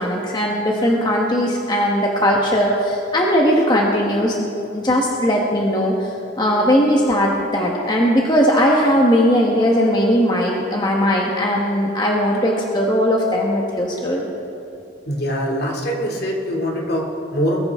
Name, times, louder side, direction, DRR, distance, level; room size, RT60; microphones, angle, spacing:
voice 1, 0.0-14.3, equal, 25° left, -2 dB, 1.3 m, -18 dB
voice 2, 15.1-17.7, equal, 55° left, 0 dB, 2.5 m, -23 dB
22.0 x 15.0 x 3.6 m, 2.9 s
head